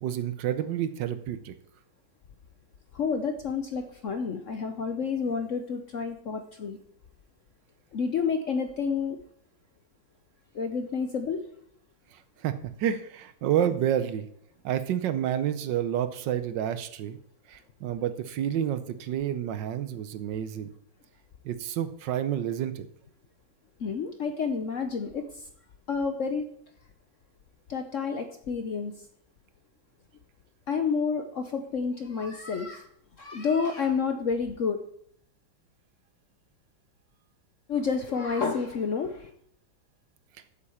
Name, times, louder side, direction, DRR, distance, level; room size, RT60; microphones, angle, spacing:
voice 1, 0.0-1.5 12.1-14.3 14.6-17.2 17.5-20.7 21.4-22.9, right 10 dB, 75° right, 11 dB, 1.3 m, -29 dB
voice 2, 2.9-6.8 7.9-9.2 10.5-11.4 23.8-25.5 25.9-26.5 27.7-29.1 30.7-32.9 33.2-34.8 37.7-39.3, left 5 dB, 55° left, 7 dB, 0.9 m, -29 dB
8.4 x 7.5 x 7.0 m, 0.69 s
omnidirectional pair, 2.1 m